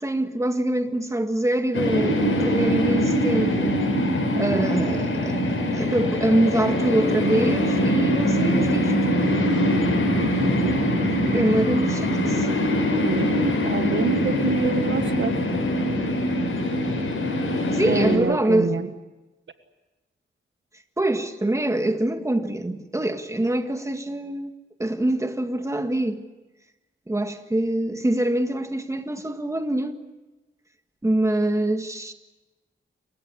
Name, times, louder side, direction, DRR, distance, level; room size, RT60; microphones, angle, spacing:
voice 1, 0.0-3.8 4.4-5.4 5.7-9.0 11.3-12.5 17.7-18.8 21.0-24.5 24.8-26.2 27.1-30.0 31.0-32.1, right 1 dB, 15° right, 1.8 m, -24 dB
sound 1, 1.7-18.2, equal, 75° left, 6.0 m, -23 dB
voice 2, 13.0-15.5 17.8-18.9, right 5 dB, 65° right, 1.6 m, -26 dB
28.0 x 16.0 x 9.7 m
wide cardioid pair, 85°, 21 cm